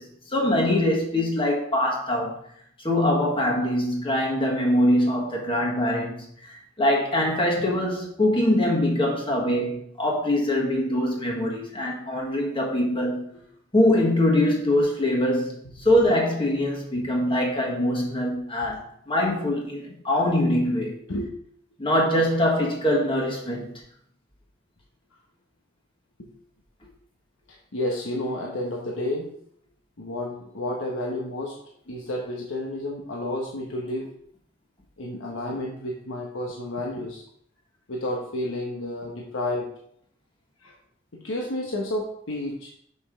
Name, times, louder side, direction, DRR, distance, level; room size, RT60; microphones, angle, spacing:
voice 1, 0.0-2.4 2.8-13.2 13.7-15.5 15.8-21.0 21.8-23.7, left 1 dB, 25° left, 1.6 m, -23 dB
voice 2, 27.7-29.3 30.0-31.5 31.9-34.1 35.0-37.2 37.9-39.7 40.6-40.7 41.1-42.7, left 1 dB, 90° left, 1.1 m, -31 dB
6.7 x 5.4 x 3.7 m
head